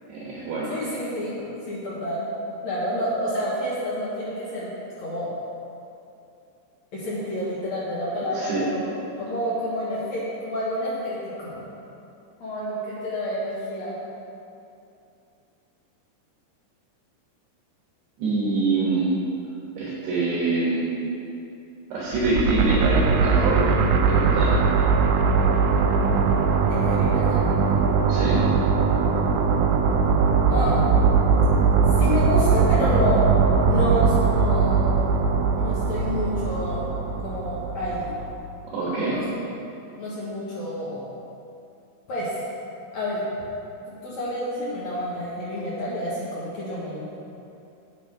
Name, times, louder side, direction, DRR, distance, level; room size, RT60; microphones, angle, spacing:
voice 1, 0.1-0.7 8.3-8.6 18.2-19.1 19.8-20.8 21.9-23.6 24.1-24.5 28.1-28.4 38.7-39.2, right 3 dB, 70° right, -7 dB, 3.2 m, -25 dB
voice 2, 0.7-1.4 1.7-2.3 2.6-4.7 5.0-5.3 6.9-11.6 12.4-13.9 26.7-27.5 30.5-30.8 32.0-34.9 35.6-36.8 37.2-38.1 38.9-39.2 40.0-41.0 42.1-42.3 42.9-43.3 44.0-47.0, left 1 dB, 75° left, -8 dB, 1.6 m, -29 dB
sound 1, 22.1-38.3, right 5 dB, 90° right, 3.0 m, -20 dB
8.8 x 8.1 x 4.8 m, 2.7 s
omnidirectional pair, 5.4 m